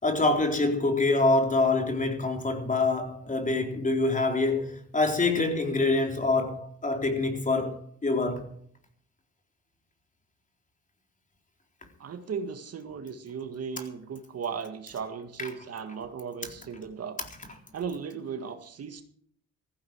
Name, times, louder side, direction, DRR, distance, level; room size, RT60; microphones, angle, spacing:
voice 1, 0.0-8.5, left 3 dB, 25° left, 4.0 m, -25 dB
voice 2, 12.0-17.2 17.7-19.0, right 6 dB, 55° right, 1.8 m, -36 dB
16.0 x 15.0 x 4.7 m
cardioid pair, 90°, 30 cm